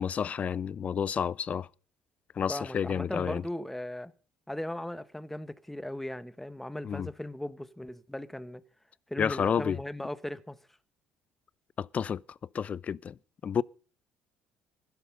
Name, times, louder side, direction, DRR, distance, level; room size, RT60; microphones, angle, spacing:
voice 1, 0.0-1.7 2.4-3.4 6.8-7.1 9.2-9.8 11.8-12.2 12.5-13.2 13.4-13.6, left 7 dB, 45° left, 0.6 m, -30 dB
voice 2, 2.5-4.1 4.5-8.6 9.1-10.6, left 1 dB, 5° left, 1.4 m, -38 dB
16.0 x 12.0 x 5.5 m
hypercardioid pair, 60°, 3 cm